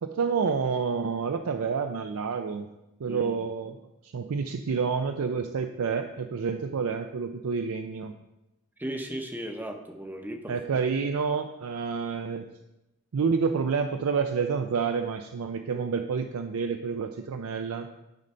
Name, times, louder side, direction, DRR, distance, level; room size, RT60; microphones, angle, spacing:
voice 1, 0.0-2.7 3.0-8.1 10.5-12.5 13.1-17.9, right 5 dB, 80° right, 7 dB, 0.4 m, -29 dB
voice 2, 3.1-3.4 8.8-10.8, right 1 dB, 10° right, 4 dB, 0.7 m, -36 dB
10.5 x 3.9 x 5.5 m, 0.95 s
head